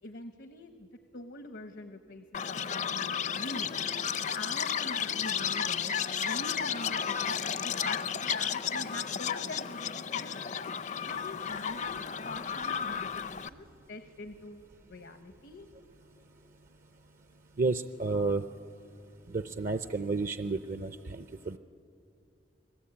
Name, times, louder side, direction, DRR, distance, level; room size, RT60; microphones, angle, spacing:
voice 1, 0.0-3.9 4.3-10.5 11.0-15.7, left 2 dB, 80° left, 7 dB, 1.1 m, -44 dB
Chirp tweet, 2.3-13.5, left 7 dB, 45° left, 0.5 m, -33 dB
voice 2, 17.6-18.4 19.3-21.6, right 3 dB, 50° right, 10 dB, 0.6 m, -31 dB
29.5 x 20.5 x 8.7 m, 2.7 s
head